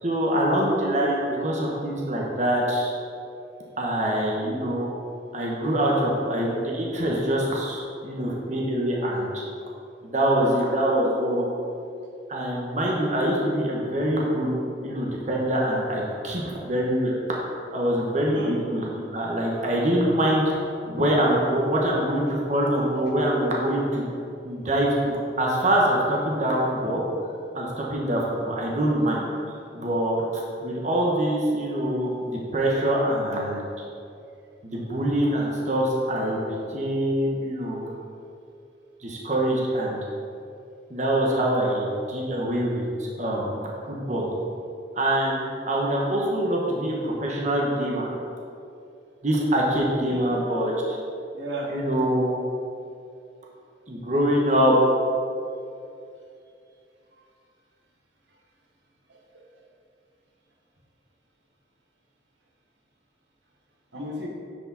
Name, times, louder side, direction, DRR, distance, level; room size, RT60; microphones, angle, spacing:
voice 1, 0.0-2.9 3.8-4.9 5.3-9.4 10.1-11.5 12.3-14.5 14.8-17.1 17.7-18.8 19.1-20.6 20.8-24.1 24.4-27.0 27.5-33.6 34.6-36.4 36.7-37.9 39.0-40.0 40.9-43.6 43.8-44.3 44.9-48.1 49.2-50.7 51.7-52.3 53.9-54.7, right 1 dB, 40° right, -3 dB, 1.2 m, -24 dB
voice 2, 18.3-18.6 50.1-50.3 51.3-51.7 57.1-57.2 58.3-58.4 59.1-59.6 63.9-64.3, right 1 dB, 85° right, -1 dB, 1.4 m, -35 dB
10.5 x 5.0 x 4.1 m, 2.5 s
head